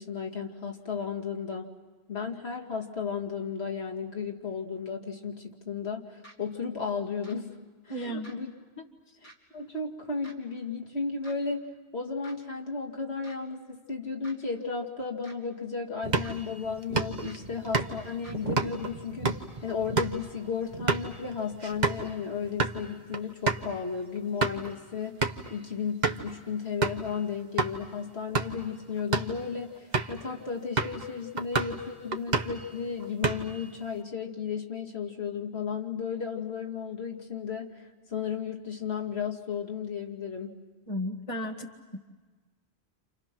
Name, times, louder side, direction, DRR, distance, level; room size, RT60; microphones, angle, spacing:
voice 1, 0.0-1.7 2.1-7.5 7.8-8.5 9.2-19.3 19.6-40.6, left 6 dB, 75° left, 0 dB, 2.6 m, -34 dB
sound 1, 6.2-6.4 7.2-7.4 8.2-8.4 9.2-9.4 10.2-10.3 11.2-11.4 12.2-12.4 13.2-13.4 14.2-14.4 15.2-15.4 16.2-16.4 17.2-17.4 18.2-18.4, right 1 dB, 45° left, 3.6 m, -49 dB
voice 2, 7.9-8.3 40.9-42.0, equal, 30° left, 2 dB, 1.9 m, -34 dB
sound 2, 16.0-22.1 22.4-22.8 23.1-23.2 23.5-23.7 24.2-24.7 25.2-25.5 26.0-26.3 26.8-27.1 27.6-27.7 28.2-28.6 29.0-29.4 29.9-30.2 30.8-31.1 31.4-31.8 32.1-32.6 33.0-33.6, right 4 dB, 40° right, 1.3 m, -30 dB
30.0 x 28.5 x 6.1 m, 1.4 s
omnidirectional pair, 1.1 m